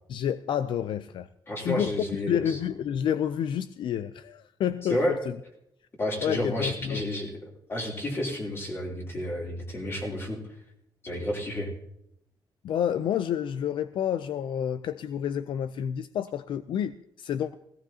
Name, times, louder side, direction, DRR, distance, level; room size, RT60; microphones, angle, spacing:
voice 1, 0.1-1.3 1.6-1.9 2.3-5.4 6.2-7.0 12.6-17.5, left 9 dB, 70° left, 0.4 m, -29 dB
voice 2, 1.5-2.6 4.9-5.2 6.0-7.3 7.7-10.4 11.0-11.7, left 1 dB, 30° left, 3.2 m, -30 dB
17.0 x 17.0 x 2.8 m
wide cardioid pair, 150°, 9 cm